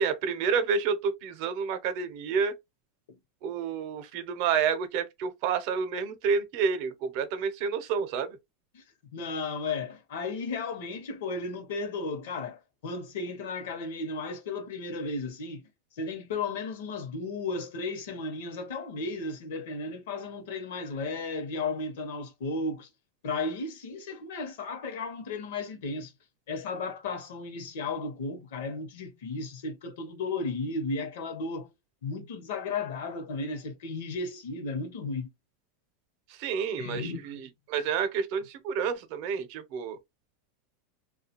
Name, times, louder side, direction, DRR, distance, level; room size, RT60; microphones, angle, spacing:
voice 1, 0.0-2.6 3.4-8.4 36.3-40.0, right 6 dB, 55° right, 0.6 m, -29 dB
voice 2, 9.1-15.6 16.0-22.9 23.2-26.1 26.5-31.7 32.0-35.3 36.7-37.4, left 3 dB, 75° left, 0.7 m, -34 dB
2.5 x 2.2 x 2.8 m
supercardioid pair, 135°, 0 cm